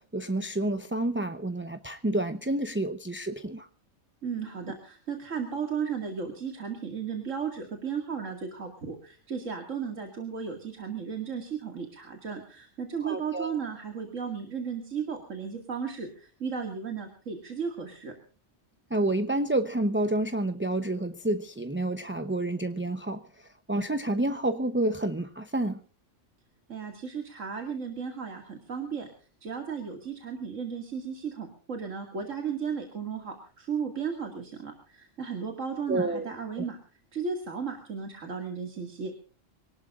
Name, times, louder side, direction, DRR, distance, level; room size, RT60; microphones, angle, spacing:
voice 1, 0.0-3.7 13.0-13.6 18.9-25.8 35.9-36.3 36.6-36.7, right 1 dB, 10° right, 9 dB, 0.6 m, -29 dB
voice 2, 4.2-18.1 26.7-29.1 29.4-36.8 37.1-39.1, right 6 dB, 85° right, 4 dB, 2.6 m, -35 dB
25.0 x 18.5 x 2.5 m, 0.41 s
omnidirectional pair, 1.3 m